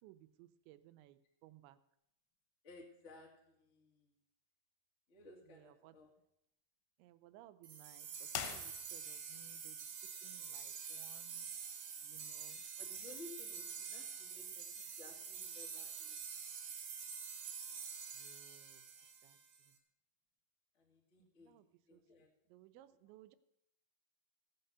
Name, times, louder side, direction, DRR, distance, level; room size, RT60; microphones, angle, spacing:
voice 1, 0.0-1.8 5.8-5.9 7.0-8.1 8.4-9.8 10.2-11.5 12.0-12.6 18.2-18.8 19.2-19.4 21.5-21.6 21.9-22.0 22.5-23.4, right 14 dB, 85° right, 12 dB, 3.0 m, -61 dB
voice 2, 2.6-4.1 5.1-6.1 12.8-16.2 17.7-17.8 20.7-21.5 21.9-22.3 22.7-23.1, left 3 dB, 35° left, 0 dB, 1.2 m, -58 dB
sound 1, 7.6-19.7, right 6 dB, 65° right, 3.4 m, -47 dB
sound 2, 8.3-9.3, left 10 dB, 80° left, 3.2 m, -44 dB
16.0 x 6.8 x 6.7 m, 0.80 s
omnidirectional pair, 5.1 m